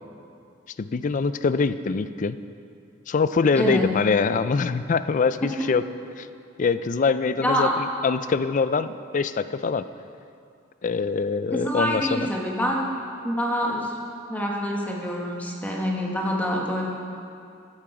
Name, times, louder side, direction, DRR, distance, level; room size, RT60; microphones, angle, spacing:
voice 1, 0.8-2.4 3.1-5.8 6.2-6.3 6.6-9.8 10.8-12.3, left 4 dB, 40° left, 13 dB, 0.4 m, -24 dB
voice 2, 3.5-3.9 5.4-5.7 7.4-7.8 11.5-12.9 13.2-13.9 14.3-16.8, equal, 10° left, -2 dB, 1.2 m, -26 dB
13.5 x 10.5 x 4.9 m, 2.5 s
head